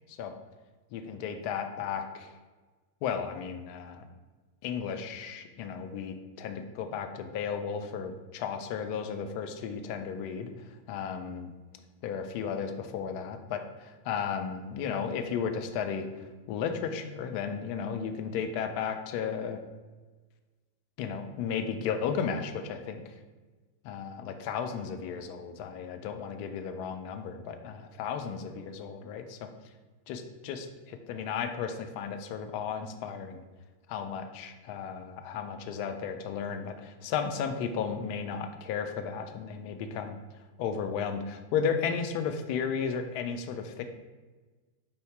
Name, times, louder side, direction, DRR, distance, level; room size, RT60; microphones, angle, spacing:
voice 1, 0.9-2.3 3.0-4.0 4.6-10.5 10.9-11.5 12.0-13.6 14.1-16.1 16.5-19.6 21.0-23.0 23.8-29.5 30.1-33.4 33.9-40.2 40.6-43.8, left 6 dB, 45° left, 7 dB, 0.4 m, -34 dB
4.5 x 2.7 x 3.2 m, 1.3 s
figure-of-eight pair, 90°, 0 cm